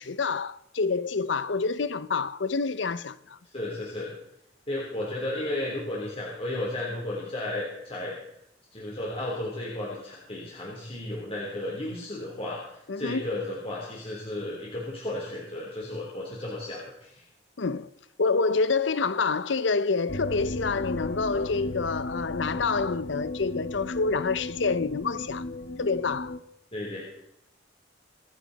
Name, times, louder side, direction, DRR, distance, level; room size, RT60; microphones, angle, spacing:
voice 1, 0.0-3.4 12.9-13.3 17.6-17.9 18.2-25.4 25.8-26.3, left 4 dB, 70° left, 0.7 m, -27 dB
voice 2, 3.4-4.1 4.7-8.2 8.7-17.3 22.5-22.6 26.7-27.0, left 1 dB, 30° left, 3.5 m, -34 dB
sound 1, 20.1-26.4, left 2 dB, 55° left, 1.2 m, -35 dB
26.5 x 9.0 x 4.1 m
head